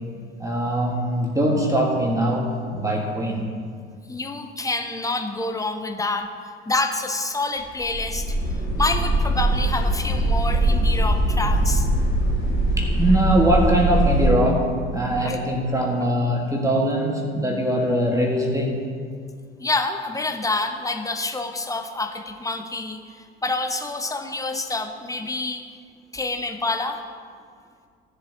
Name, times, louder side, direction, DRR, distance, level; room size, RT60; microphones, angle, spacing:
voice 1, 0.4-3.5 12.8-18.8, equal, 10° right, -1 dB, 1.6 m, -22 dB
voice 2, 4.1-8.3 8.8-11.9 15.2-15.4 19.6-25.7 26.1-27.0, left 3 dB, 10° left, 6 dB, 1.0 m, -27 dB
sound 1, 7.7-14.3, right 1 dB, 75° left, 2.7 m, -21 dB
16.0 x 7.4 x 2.9 m, 2.1 s
figure-of-eight pair, 60°, 31 cm